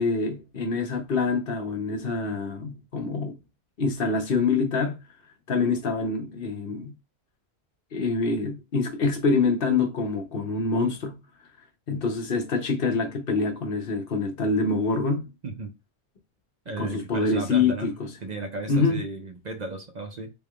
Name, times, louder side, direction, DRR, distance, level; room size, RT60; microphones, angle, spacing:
voice 1, 0.0-3.3 3.8-5.0 5.5-6.9 7.9-11.2 11.9-15.3 16.8-18.1 18.7-19.0, left 4 dB, 60° left, 1.0 m, -25 dB
voice 2, 16.7-17.9 18.2-20.3, right 3 dB, 50° right, 0.6 m, -35 dB
3.5 x 3.3 x 2.3 m
omnidirectional pair, 1.1 m